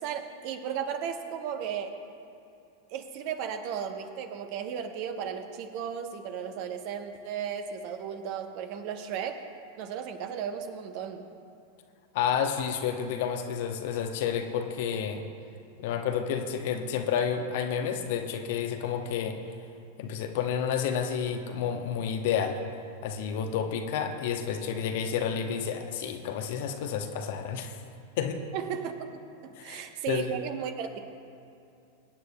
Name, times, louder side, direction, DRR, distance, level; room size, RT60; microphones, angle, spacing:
voice 1, 0.0-2.0 2.9-9.4 9.8-11.2 28.5-31.0, right 8 dB, 45° right, 7 dB, 1.0 m, -35 dB
voice 2, 12.1-15.3 15.8-19.4 20.0-22.6 23.0-27.8 28.2-28.4 29.6-30.3, left 7 dB, 50° left, 5 dB, 0.9 m, -30 dB
24.0 x 9.5 x 2.3 m, 2.6 s
figure-of-eight pair, 90°, 0 cm